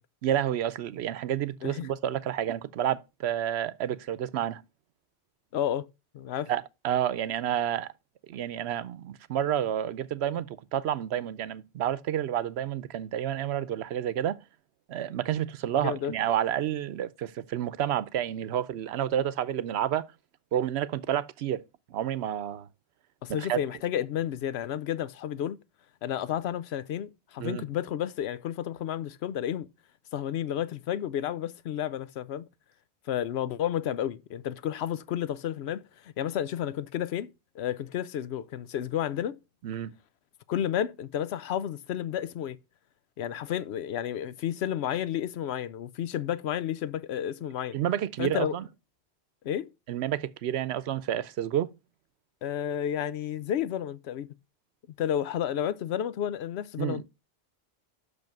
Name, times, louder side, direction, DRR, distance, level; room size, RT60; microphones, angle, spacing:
voice 1, 0.2-4.6 6.5-7.9 8.3-14.4 14.9-20.1 20.5-21.6 21.9-22.7 23.4-23.6 27.4-27.6 39.6-39.9 47.7-48.7 49.9-51.7 56.8-57.0, right 10 dB, 90° right, 0.9 m, -30 dB
voice 2, 5.5-5.9 6.1-6.5 15.8-16.1 23.2-25.6 26.0-29.7 30.1-32.5 33.1-39.4 40.5-42.6 43.2-47.8 48.2-48.5 49.4-49.7 52.4-54.3 55.0-57.0, left 10 dB, 85° left, 0.9 m, -31 dB
6.3 x 5.2 x 6.0 m
omnidirectional pair, 1.1 m